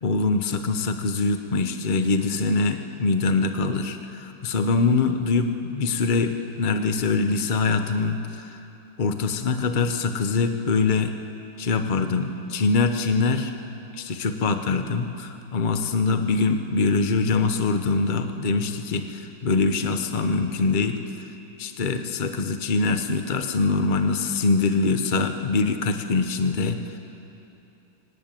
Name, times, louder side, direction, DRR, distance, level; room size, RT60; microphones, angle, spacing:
voice 1, 0.0-8.6 9.0-11.1 11.6-13.5 13.9-21.3 21.6-27.0, left 4 dB, 55° left, 7 dB, 0.5 m, -24 dB
17.5 x 17.5 x 9.0 m, 2.8 s
omnidirectional pair, 2.4 m